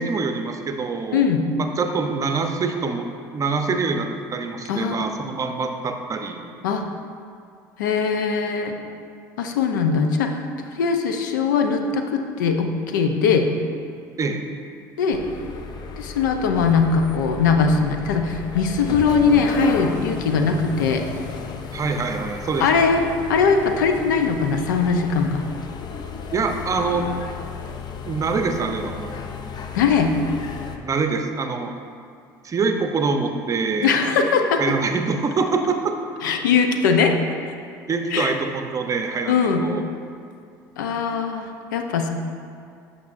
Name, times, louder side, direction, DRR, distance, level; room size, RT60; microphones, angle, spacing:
voice 1, 0.0-1.2 1.6-3.1 3.3-6.4 14.2-14.4 21.7-22.9 26.3-27.1 28.1-29.2 30.8-31.7 32.4-34.0 34.6-36.0 37.9-39.9, right 4 dB, 35° right, 5 dB, 0.7 m, -25 dB
voice 2, 1.1-1.5 4.7-5.1 6.6-6.8 7.8-8.7 9.4-10.3 10.7-13.5 15.0-15.2 16.0-21.1 22.6-23.0 23.3-25.5 29.7-30.1 33.8-34.6 36.2-37.1 38.1-38.3 39.3-39.7 40.8-42.1, left 5 dB, 90° left, 5 dB, 0.6 m, -20 dB
sound 1, 15.1-30.8, left 5 dB, 45° left, 0.6 m, -34 dB
9.3 x 6.0 x 2.5 m, 2.4 s
hypercardioid pair, 80°, 10 cm